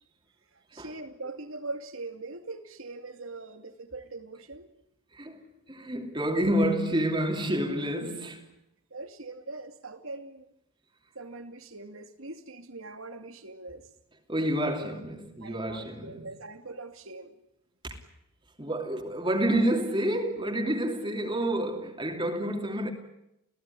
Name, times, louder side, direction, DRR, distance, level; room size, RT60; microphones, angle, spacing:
voice 1, 0.7-4.7 8.9-10.5 11.1-13.9 15.4-17.3, right 2 dB, 80° right, 2.5 m, -41 dB
voice 2, 5.7-8.5 14.3-16.2 17.8-17.9 18.6-22.9, right 1 dB, 25° right, 2.9 m, -29 dB
29.0 x 17.0 x 9.9 m
head